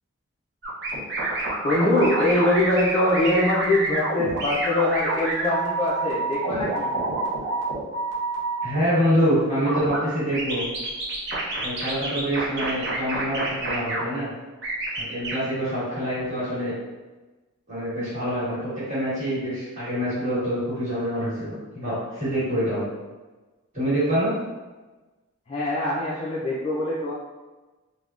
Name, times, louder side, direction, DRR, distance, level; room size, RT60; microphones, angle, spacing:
sound 1, 0.6-8.6 9.6-10.0 10.3-14.0 14.6-15.3, right 2 dB, 50° right, 0.6 m, -28 dB
voice 1, 1.6-6.9 25.5-27.1, left 1 dB, 25° left, -8 dB, 0.3 m, -23 dB
voice 2, 8.6-10.6 11.6-14.3 15.0-16.7 17.7-22.8 23.7-24.3, equal, 35° right, -10 dB, 1.4 m, -25 dB
3.4 x 2.1 x 2.4 m, 1.2 s
head